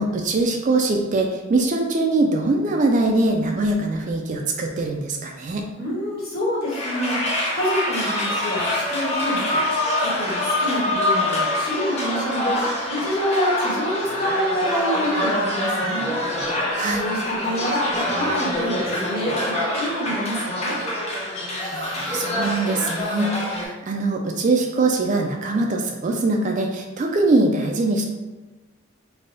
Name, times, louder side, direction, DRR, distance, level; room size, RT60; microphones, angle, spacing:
voice 1, 0.0-5.7 16.7-17.0 21.6-28.0, right 2 dB, 35° right, 2 dB, 0.3 m, -22 dB
voice 2, 5.8-7.2 7.5-9.6 10.0-16.1 17.0-20.8, equal, 50° left, -6 dB, 1.2 m, -27 dB
sound 1, 6.6-23.7, left 1 dB, 30° left, 0.7 m, -25 dB
3.4 x 2.2 x 3.8 m, 1.1 s
head